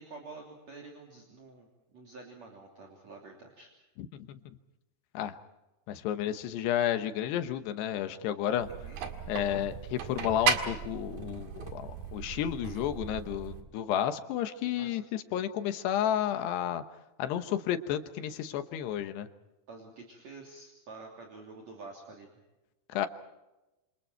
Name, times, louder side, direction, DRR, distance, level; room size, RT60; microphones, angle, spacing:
voice 1, 0.0-3.7 8.7-9.0 14.7-15.0 19.7-22.4, right 3 dB, 45° right, 0 dB, 4.0 m, -48 dB
voice 2, 5.9-8.7 9.3-16.8 17.2-19.3 22.9-23.1, left 10 dB, 80° left, 9 dB, 3.2 m, -31 dB
sound 1, 8.6-13.6, right 6 dB, 60° right, 3.4 m, -35 dB
28.0 x 27.5 x 4.6 m, 1.0 s
omnidirectional pair, 4.8 m